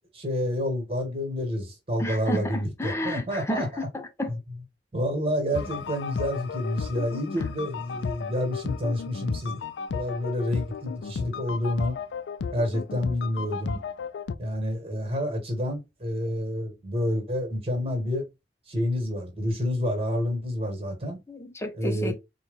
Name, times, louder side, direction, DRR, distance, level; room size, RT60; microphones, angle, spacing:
voice 1, 0.1-3.7 4.3-4.4 4.9-9.6 9.9-11.9 12.5-13.8 14.4-18.2 18.7-21.2 21.8-22.1, left 1 dB, 35° right, 1.5 m, -28 dB
voice 2, 2.0-4.4 21.3-22.1, left 1 dB, 15° left, 0.6 m, -31 dB
sound 1, 5.5-14.3, left 6 dB, 80° left, 0.4 m, -34 dB
4.4 x 2.3 x 3.5 m
head